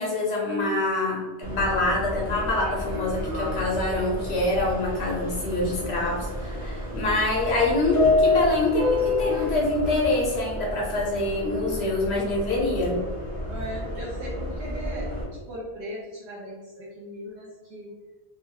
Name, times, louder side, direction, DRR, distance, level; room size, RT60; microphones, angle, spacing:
voice 1, 0.0-13.0, left 2 dB, 70° left, -2 dB, 0.8 m, -25 dB
Subway metro underground, 1.4-15.2, left 2 dB, 30° right, 1.2 m, -29 dB
voice 2, 13.5-15.1 15.5-17.9, equal, 80° right, -7 dB, 1.0 m, -37 dB
3.4 x 2.2 x 2.7 m, 1.3 s
omnidirectional pair, 1.1 m